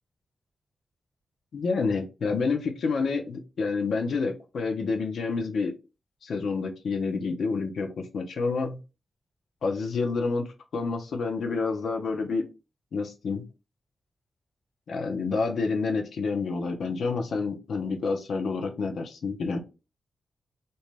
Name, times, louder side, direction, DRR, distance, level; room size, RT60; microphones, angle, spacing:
voice 1, 1.5-5.7 6.2-8.8 9.6-12.4 12.9-13.4 14.9-19.6, left 4 dB, 80° left, 4 dB, 0.6 m, -28 dB
2.7 x 2.2 x 3.1 m, 0.29 s
wide cardioid pair, 145°, 0 cm